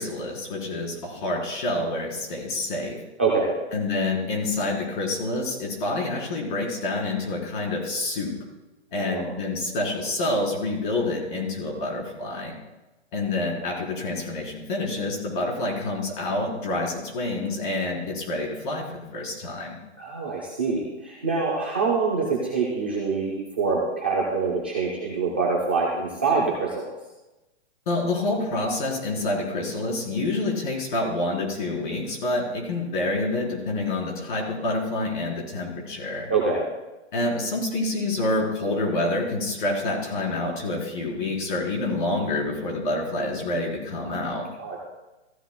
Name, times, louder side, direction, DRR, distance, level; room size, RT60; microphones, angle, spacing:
voice 1, 0.0-3.0 3.7-8.3 8.9-12.5 13.1-19.8 27.9-36.3 37.1-44.5, left 2 dB, 45° left, -1 dB, 3.9 m, -27 dB
voice 2, 3.2-3.6 8.9-9.3 20.0-26.7 36.3-36.7 44.6-44.8, right 4 dB, 10° right, -4 dB, 0.4 m, -25 dB
15.0 x 14.5 x 2.2 m, 1.0 s
hypercardioid pair, 165°, 34 cm